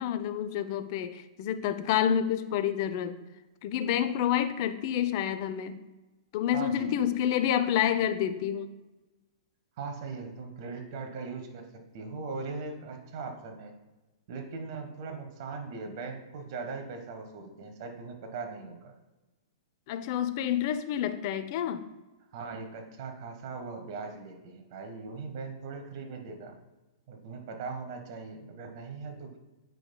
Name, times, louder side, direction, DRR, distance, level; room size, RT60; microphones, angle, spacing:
voice 1, 0.0-3.2 3.6-5.8 6.3-8.7 19.9-21.9, left 9 dB, 45° left, 10 dB, 0.5 m, -28 dB
voice 2, 6.5-7.1 9.8-13.7 14.3-18.9 22.3-26.6 27.1-29.4, right 4 dB, 50° right, 4 dB, 1.3 m, -40 dB
9.1 x 5.3 x 2.2 m, 1.1 s
hypercardioid pair, 115°, 3 cm